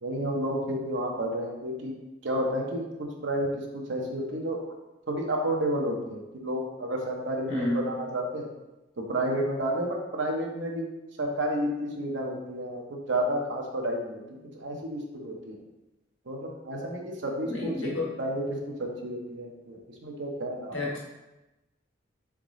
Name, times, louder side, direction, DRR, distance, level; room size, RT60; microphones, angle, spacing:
voice 1, 0.0-1.9 2.2-2.8 3.2-4.6 5.1-8.5 9.0-10.8 11.2-15.6 16.3-20.8, right 1 dB, 70° right, 0 dB, 0.7 m, -31 dB
voice 2, 7.5-7.8 17.5-18.1 20.7-21.0, left 2 dB, 90° left, -4 dB, 1.3 m, -30 dB
4.0 x 3.5 x 3.7 m, 1.0 s
head